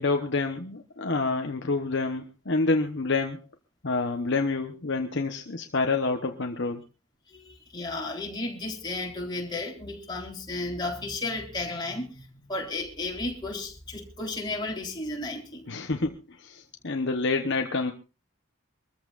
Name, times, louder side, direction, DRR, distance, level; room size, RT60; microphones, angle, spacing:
voice 1, 0.0-3.4 3.8-6.8 15.7-17.9, left 3 dB, 55° left, 5 dB, 1.0 m, -28 dB
voice 2, 7.3-15.7, left 2 dB, 20° left, -2 dB, 3.8 m, -33 dB
24.5 x 14.5 x 2.5 m, 0.31 s
head